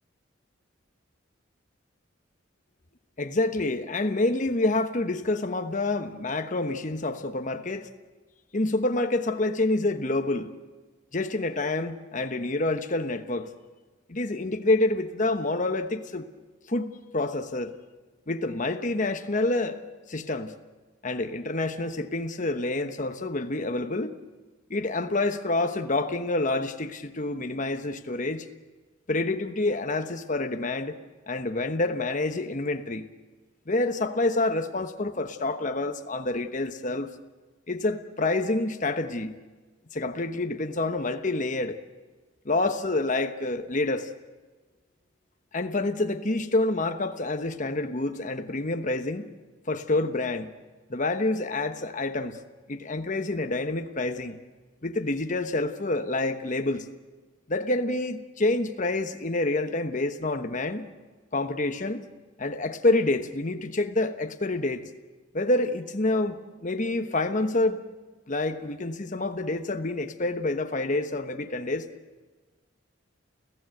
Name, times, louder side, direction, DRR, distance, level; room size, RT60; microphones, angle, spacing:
voice 1, 3.2-7.9 8.5-10.5 11.1-13.5 14.1-16.3 16.7-17.7 18.3-19.8 20.1-20.5 21.0-24.2 24.7-28.4 29.1-31.0 31.3-33.1 33.7-37.1 37.7-39.4 39.9-41.8 42.4-44.1 45.5-49.3 49.7-50.5 50.9-52.4 52.7-54.4 54.8-56.9 57.5-60.9 61.3-62.0 62.4-64.8 65.3-67.8 68.3-71.9, left 2 dB, 40° left, 1.1 m, -27 dB
29.5 x 15.5 x 7.9 m
head